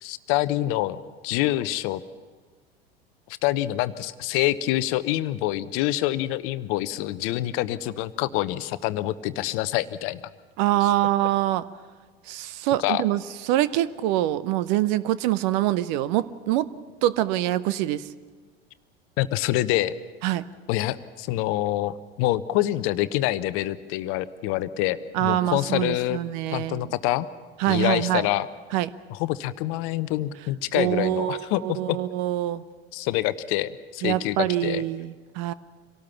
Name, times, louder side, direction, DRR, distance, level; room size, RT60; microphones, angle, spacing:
voice 1, 0.0-2.0 3.4-10.2 12.8-13.0 19.2-19.9 20.7-26.2 26.5-27.3 27.7-28.5 29.1-32.0 32.9-34.4 34.6-34.8, left 15 dB, 45° left, 14 dB, 0.9 m, -26 dB
voice 2, 10.6-11.6 12.3-16.7 17.0-18.1 20.2-20.4 25.1-26.9 27.6-28.3 28.7-28.9 30.7-32.6 34.0-35.5, right 14 dB, 45° right, 16 dB, 0.8 m, -25 dB
26.0 x 18.0 x 5.8 m, 1.5 s
figure-of-eight pair, 75°, 31 cm